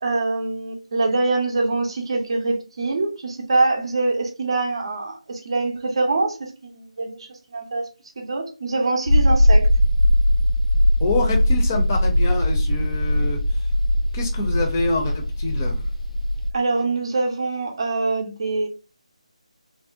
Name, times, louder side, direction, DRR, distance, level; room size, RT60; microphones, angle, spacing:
voice 1, 0.0-7.8 8.2-9.7 16.5-18.7, right 3 dB, 45° right, 0.5 m, -24 dB
sound 1, 9.1-16.5, left 1 dB, 75° left, 0.4 m, -20 dB
voice 2, 11.0-13.4 14.1-15.8, left 3 dB, 25° left, 0.6 m, -26 dB
2.7 x 2.1 x 2.4 m
figure-of-eight pair, 155°, 4 cm